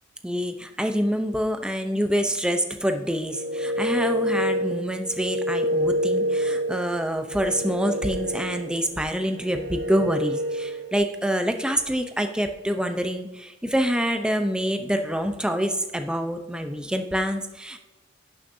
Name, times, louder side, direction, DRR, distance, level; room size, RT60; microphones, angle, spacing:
voice 1, 0.2-17.8, equal, 5° right, 6 dB, 0.6 m, -26 dB
sound 1, 3.1-11.0, equal, 85° right, 1.4 m, -28 dB
11.5 x 6.4 x 2.7 m, 1.1 s
head